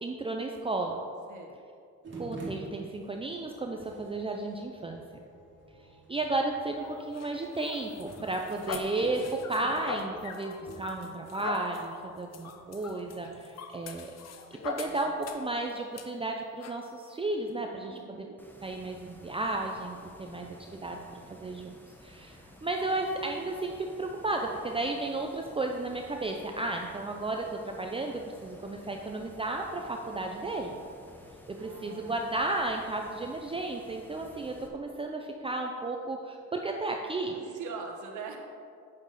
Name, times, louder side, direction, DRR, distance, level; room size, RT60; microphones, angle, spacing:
voice 1, 0.0-1.0 2.1-5.0 6.1-14.1 14.5-18.3 18.6-21.7 22.0-30.8 31.5-37.3, right 2 dB, 20° right, 2 dB, 0.6 m, -33 dB
sound 1, 2.0-13.4, right 2 dB, 40° right, 2.2 m, -49 dB
sound 2, 6.8-15.5 15.9-16.1 16.6-16.8, left 5 dB, 60° left, 0.8 m, -42 dB
voice 2, 14.8-15.1 17.7-18.4 31.5-32.2 37.2-38.4, right 5 dB, 75° right, 2 dB, 1.4 m, -43 dB
sound 3, 18.4-34.7, left 1 dB, 5° left, 1.1 m, -54 dB
8.5 x 6.7 x 4.1 m, 2.4 s
cardioid pair, 90°, 30 cm